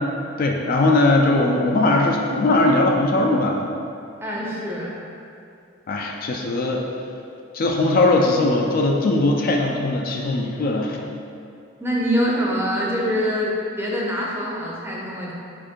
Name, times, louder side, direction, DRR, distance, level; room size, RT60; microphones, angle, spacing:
voice 1, 0.4-3.7 5.9-6.9 7.5-11.0, left 2 dB, 45° left, 1 dB, 0.3 m, -19 dB
voice 2, 4.2-4.9 11.8-15.3, equal, 10° right, -4 dB, 0.6 m, -24 dB
4.3 x 2.5 x 4.5 m, 2.5 s
head